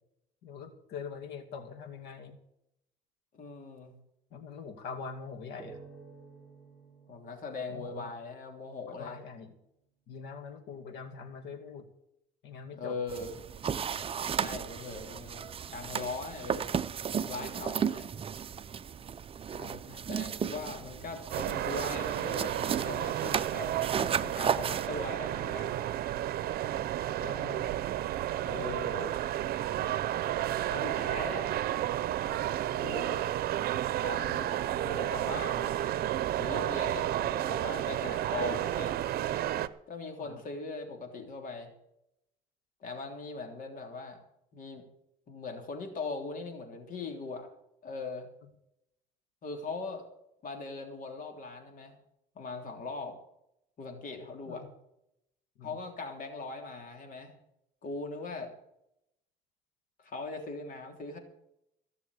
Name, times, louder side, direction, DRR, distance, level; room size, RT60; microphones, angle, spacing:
voice 1, 0.4-2.4 4.3-5.8 7.7-8.1 8.8-9.5 10.1-11.9 12.4-13.0 19.5-20.1 24.2-24.3 27.2-27.7 32.7-33.0 40.2-40.4 54.5-54.7 55.6-55.8, left 5 dB, 85° left, 6 dB, 2.6 m, -44 dB
voice 2, 3.3-3.9 7.1-9.2 12.7-13.3 14.3-16.7 17.2-18.1 20.1-23.7 24.2-25.8 28.4-29.2 30.7-31.7 32.8-33.2 34.0-35.7 36.4-39.0 39.9-41.7 42.8-44.2 44.5-44.8 45.3-47.5 47.8-48.3 49.4-50.1 50.4-52.0 52.3-53.2 53.8-54.6 55.6-57.3 57.8-58.5 60.0-61.2, left 3 dB, 55° left, 4 dB, 3.3 m, -40 dB
sound 1, 5.6-9.0, right 4 dB, ahead, 4.9 m, -53 dB
sound 2, 13.1-24.9, right 7 dB, 35° right, 0.7 m, -34 dB
sound 3, 21.3-39.7, right 12 dB, 65° right, 0.8 m, -32 dB
16.5 x 6.9 x 8.3 m, 0.80 s
cardioid pair, 110°, 17 cm